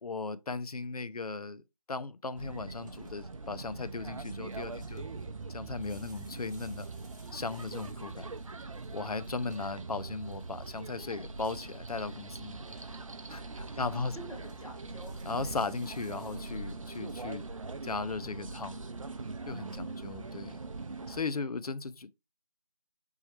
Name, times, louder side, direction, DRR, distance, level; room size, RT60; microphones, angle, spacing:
voice 1, 0.0-1.6 1.9-5.0 5.5-6.9 7.3-8.3 8.9-12.6 13.3-13.4 13.8-14.2 15.3-17.4 17.8-18.8 19.5-20.6 21.1-22.1, left 4 dB, 75° left, 0.5 m, -37 dB
sound 1, 2.4-21.2, right 3 dB, 60° right, 0.5 m, -42 dB
sound 2, 2.8-18.4, right 1 dB, 30° right, 0.9 m, -62 dB
voice 2, 14.1-15.2 19.6-20.2 21.3-21.5, right 1 dB, 60° left, 2.1 m, -50 dB
4.2 x 3.6 x 3.0 m
figure-of-eight pair, 170°, 19 cm